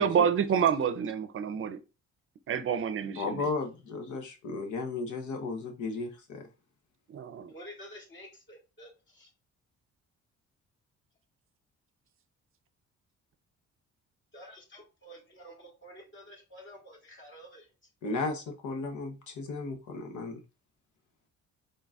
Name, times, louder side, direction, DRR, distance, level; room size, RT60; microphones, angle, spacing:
voice 1, 0.0-1.8 2.5-3.5 7.1-7.5, right 7 dB, 45° right, 0.6 m, -28 dB
voice 2, 3.0-6.5 18.0-20.4, left 3 dB, 75° left, 1.0 m, -35 dB
voice 3, 7.5-9.3 14.3-17.7 18.0-18.3, equal, 40° left, 2.0 m, -50 dB
4.0 x 3.8 x 2.4 m
cardioid pair, 90°, 30 cm